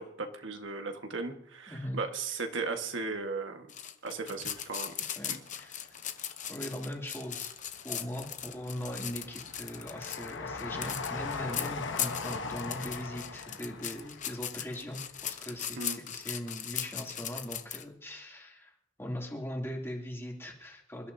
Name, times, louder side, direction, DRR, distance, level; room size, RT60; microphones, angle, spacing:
voice 1, 0.0-3.7 4.0-4.9 15.8-16.0, right 3 dB, 90° right, 5 dB, 1.5 m, -36 dB
sound 1, 3.7-17.8, left 10 dB, 40° left, 0.8 m, -38 dB
Train, 4.3-5.5 6.0-6.9 7.4-16.2 16.5-16.6, left 4 dB, 75° left, 1.0 m, -41 dB
voice 2, 5.1-5.9 6.5-7.5 7.8-18.7 19.0-21.1, equal, 15° left, -1 dB, 2.8 m, -40 dB
27.0 x 12.5 x 2.7 m, 0.77 s
head